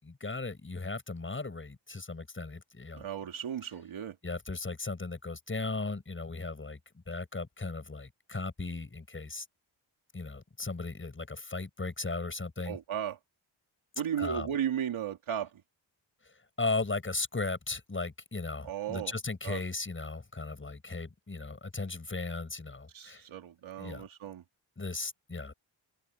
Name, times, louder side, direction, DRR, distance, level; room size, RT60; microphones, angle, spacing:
voice 1, 0.0-3.1 4.2-9.4 10.1-12.8 14.2-14.5 16.2-23.2 23.8-24.0 24.8-25.5, left 3 dB, 25° left, 6.8 m, -37 dB
voice 2, 2.9-4.2 12.7-13.2 14.0-15.5 18.6-19.1 19.4-19.6 22.9-24.4, right 9 dB, 85° right, 2.6 m, -35 dB
cardioid pair, 105°, 47 cm